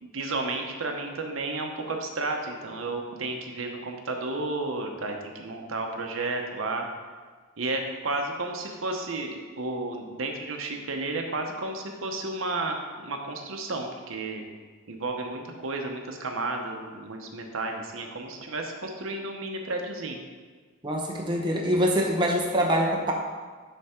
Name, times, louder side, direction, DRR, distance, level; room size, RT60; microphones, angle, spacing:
voice 1, 0.0-6.9 7.6-14.4 14.9-20.2, right 2 dB, 70° right, 3 dB, 0.9 m, -32 dB
voice 2, 20.8-23.1, equal, 20° right, -1 dB, 0.9 m, -24 dB
9.9 x 3.4 x 4.4 m, 1.5 s
head